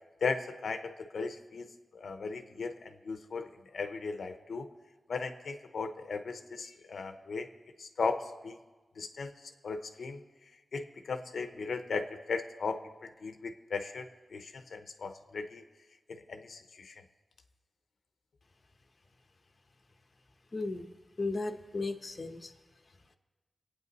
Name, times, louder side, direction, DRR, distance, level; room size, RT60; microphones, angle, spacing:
voice 1, 0.2-3.5 3.7-4.7 5.1-7.5 7.8-8.2 8.4-8.6 9.0-9.3 9.6-10.2 10.7-12.8 13.2-14.1 14.3-15.6 16.3-16.9, left 4 dB, 70° left, 7 dB, 0.7 m, -36 dB
voice 2, 20.5-20.9 21.2-22.5, left 3 dB, 35° left, 6 dB, 0.8 m, -35 dB
24.5 x 8.8 x 4.0 m, 1.3 s
wide cardioid pair, 160°, 0 cm